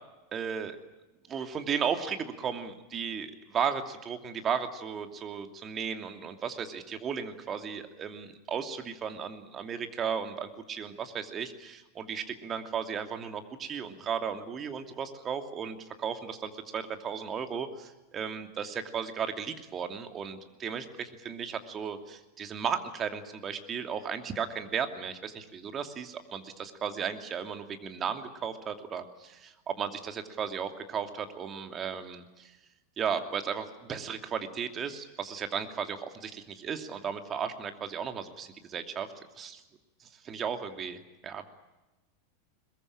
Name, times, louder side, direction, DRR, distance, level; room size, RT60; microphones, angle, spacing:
voice 1, 0.3-0.8 1.3-32.5 33.0-39.1 39.4-39.6 40.0-41.5, right 7 dB, 30° right, 7 dB, 2.8 m, -35 dB
22.0 x 21.5 x 8.8 m, 1.1 s
hypercardioid pair, 90°, 0 cm